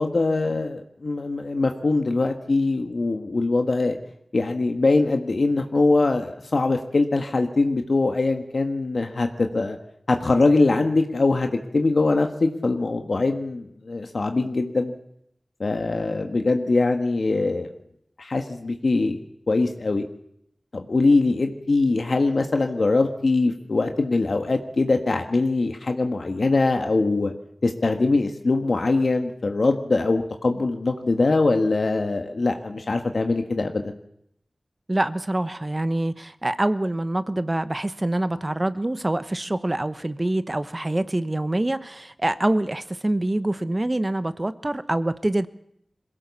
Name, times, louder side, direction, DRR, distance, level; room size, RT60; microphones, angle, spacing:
voice 1, 0.0-4.0 4.3-9.8 10.1-14.9 15.6-17.7 18.2-19.2 19.5-20.0 20.7-27.3 27.6-33.9, left 3 dB, 70° left, 4 dB, 1.5 m, -22 dB
voice 2, 34.9-45.5, right 1 dB, 30° right, 12 dB, 1.0 m, -25 dB
22.0 x 16.5 x 7.1 m, 0.73 s
wide cardioid pair, 45°, 0 cm